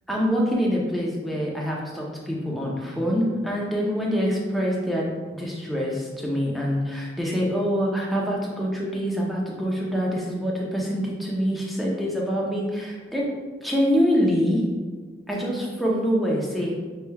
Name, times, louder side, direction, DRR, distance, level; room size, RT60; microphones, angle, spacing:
voice 1, 0.1-5.1 5.4-13.3 13.6-14.6 15.3-16.7, equal, ahead, -3 dB, 0.6 m, -25 dB
5.8 x 3.3 x 2.3 m, 1.5 s
head